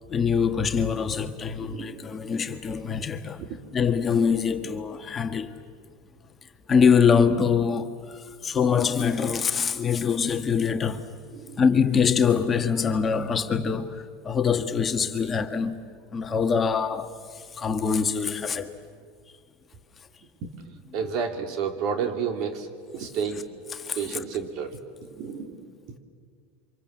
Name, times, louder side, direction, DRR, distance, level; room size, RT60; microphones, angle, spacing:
voice 1, 0.1-3.4 3.7-5.6 6.7-11.1 11.6-15.8 16.1-18.7 23.7-24.2, left 6 dB, 25° left, 1.4 m, -24 dB
voice 2, 1.7-2.1 3.5-3.6 11.3-11.6 20.4-20.5 20.9-22.7 22.9-23.4 23.9-24.7 25.1-25.7, right 6 dB, 55° right, 3.2 m, -30 dB
28.0 x 25.5 x 7.7 m
hypercardioid pair, 105°, 0 cm